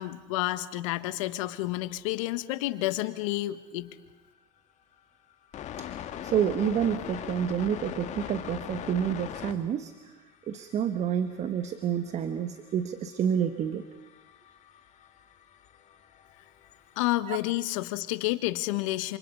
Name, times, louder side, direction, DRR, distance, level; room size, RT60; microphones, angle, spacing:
voice 1, 0.0-3.9 17.0-19.2, left 17 dB, 85° left, 12 dB, 1.4 m, -30 dB
sound 1, 4.2-4.3 5.3-9.6 9.9-10.1 10.4-17.2, left 10 dB, 45° left, 1.8 m, -41 dB
voice 2, 6.2-9.9 10.5-13.8 17.3-17.4, right 8 dB, 45° right, 10 dB, 1.4 m, -29 dB
28.0 x 27.5 x 5.5 m, 1.1 s
supercardioid pair, 105°, 16 cm